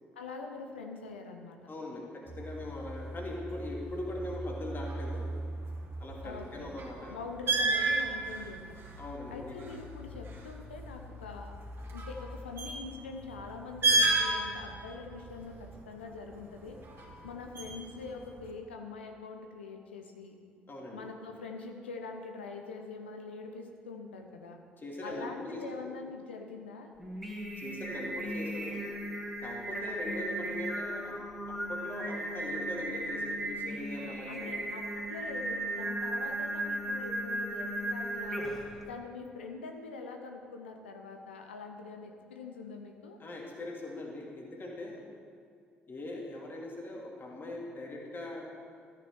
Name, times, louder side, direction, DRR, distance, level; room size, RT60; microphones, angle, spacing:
voice 1, 0.2-1.6 6.2-6.8 7.1-8.8 9.3-11.5 11.9-16.8 17.2-20.4 20.9-24.6 25.0-26.9 29.8-30.3 34.0-38.4 38.9-43.2, left 4 dB, 80° left, 3 dB, 0.7 m, -44 dB
voice 2, 1.7-5.3 6.0-7.2 9.0-9.7 20.7-21.0 24.8-25.9 27.6-28.9 29.4-31.2 31.5-34.5 43.2-45.0 45.9-48.5, left 1 dB, 35° left, -1 dB, 2.4 m, -41 dB
sound 1, 2.3-18.5, right 2 dB, 40° right, 2.3 m, -35 dB
Singing, 27.0-38.7, right 1 dB, ahead, 2.5 m, -36 dB
13.5 x 8.0 x 4.7 m, 2.3 s
figure-of-eight pair, 50°, 6 cm